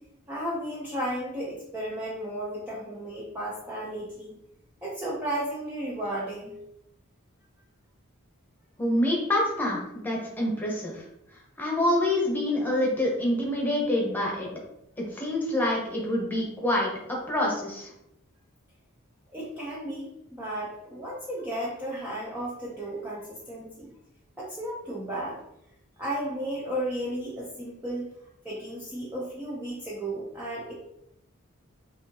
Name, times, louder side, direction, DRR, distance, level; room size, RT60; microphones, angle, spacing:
voice 1, 0.3-4.3 4.8-6.5 19.3-23.9 24.4-25.4 26.0-28.1 28.4-30.7, right 1 dB, 10° right, -7 dB, 0.8 m, -34 dB
voice 2, 8.8-11.0 11.6-14.5 15.1-17.9, left 1 dB, 10° left, -3 dB, 1.2 m, -26 dB
6.1 x 2.8 x 2.9 m, 0.83 s
head